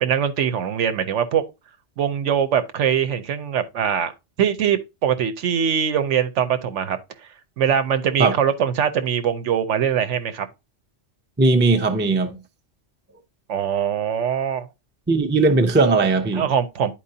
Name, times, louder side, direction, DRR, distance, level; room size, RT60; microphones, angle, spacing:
voice 1, 0.0-1.4 2.0-4.1 4.4-7.3 7.6-10.5 13.5-14.7 16.3-16.9, right 8 dB, 75° right, 1.0 m, -22 dB
voice 2, 11.4-12.4 15.1-16.4, right 3 dB, 15° right, 0.3 m, -18 dB
10.0 x 4.5 x 2.7 m
omnidirectional pair, 1.3 m